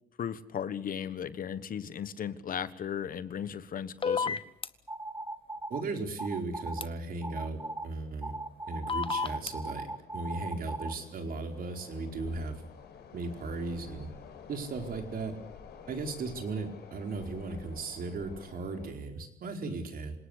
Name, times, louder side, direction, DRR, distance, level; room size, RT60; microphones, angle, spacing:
voice 1, 0.2-4.4, left 8 dB, 60° left, 14 dB, 1.4 m, -36 dB
sound 1, 3.2-3.5 3.7-3.9 4.5-4.8 5.3-18.9, left 6 dB, 80° left, 4.9 m, -52 dB
sound 2, 4.0-4.7 6.8-6.9 8.9-9.5, left 5 dB, 35° left, 1.2 m, -30 dB
sound 3, 4.9-5.8 6.2-6.9 7.2-7.9 8.2-10.9, right 2 dB, 15° right, 1.3 m, -38 dB
voice 2, 5.7-8.3 8.6-12.6 13.1-14.1 14.5-15.3 15.9-20.1, right 3 dB, 65° right, 4 dB, 4.6 m, -36 dB
27.0 x 18.5 x 8.4 m, 0.71 s
cardioid pair, 90°, 16 cm